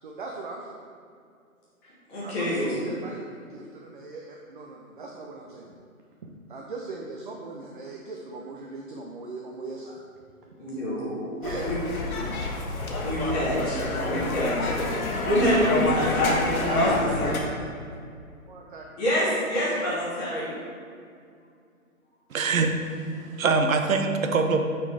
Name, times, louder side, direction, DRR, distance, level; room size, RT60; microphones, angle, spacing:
voice 1, 0.0-0.8 2.2-5.7 6.2-10.0 11.4-11.7 16.7-17.7 18.5-18.9, right 3 dB, 40° right, 0 dB, 0.5 m, -39 dB
voice 2, 2.1-2.9 10.6-11.3 11.6-11.7 13.0-14.7 15.2-17.3 19.0-20.5, equal, 10° left, -9 dB, 0.6 m, -26 dB
sound 1, 11.4-17.4, left 2 dB, 80° left, 1.3 m, -27 dB
voice 3, 22.3-24.7, right 4 dB, 70° right, 5 dB, 0.8 m, -24 dB
8.8 x 4.2 x 3.2 m, 2.3 s
hypercardioid pair, 150°, 42 cm